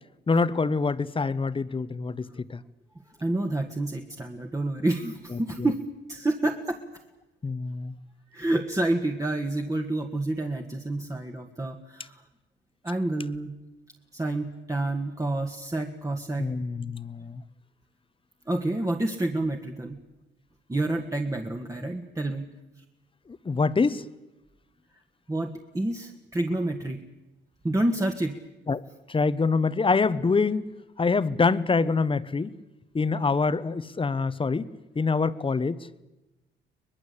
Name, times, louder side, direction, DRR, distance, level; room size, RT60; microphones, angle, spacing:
voice 1, 0.3-2.6 5.3-5.7 7.4-7.9 16.4-17.4 23.3-24.1 28.7-28.8 29.1-30.7 31.0-32.6 32.9-35.8, left 4 dB, 25° left, 16 dB, 1.1 m, -25 dB
voice 2, 3.2-5.8 6.1-6.8 8.3-12.2 12.8-13.5 14.1-16.5 18.5-20.0 20.7-22.5 25.3-27.0 27.6-28.4, right 2 dB, 15° right, 4 dB, 1.8 m, -28 dB
23.5 x 20.5 x 8.5 m, 1.0 s
cardioid pair, 90°, 20 cm